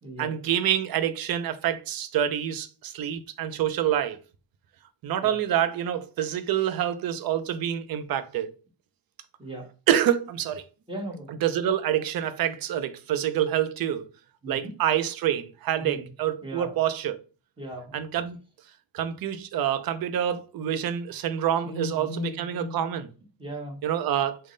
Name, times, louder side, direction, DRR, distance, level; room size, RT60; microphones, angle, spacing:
voice 1, 0.2-4.2 5.0-8.5 9.9-10.6 11.3-14.1 14.5-17.2 17.9-18.4 18.9-23.1 23.8-24.4, right 10 dB, 50° right, 0.5 m, -27 dB
voice 2, 10.9-11.3 14.4-14.7 15.8-16.1 16.4-16.7 17.6-17.9 21.6-22.8 23.4-23.8, equal, 10° right, 1.1 m, -36 dB
3.5 x 2.1 x 3.7 m
cardioid pair, 125°, 46 cm